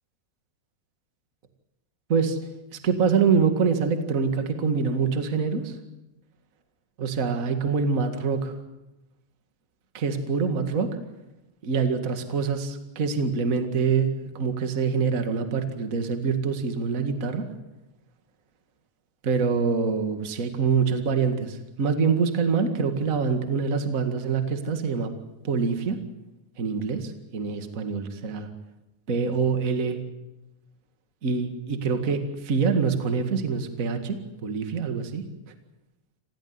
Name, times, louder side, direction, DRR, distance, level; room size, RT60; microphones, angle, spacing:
voice 1, 2.7-5.8 7.0-8.6 9.9-10.9 11.6-17.5 19.2-25.1 25.4-26.0 26.6-28.5 29.1-30.0 31.2-35.2, right 5 dB, 70° right, 7 dB, 0.7 m, -25 dB
28.0 x 16.0 x 9.7 m, 0.96 s
omnidirectional pair, 5.1 m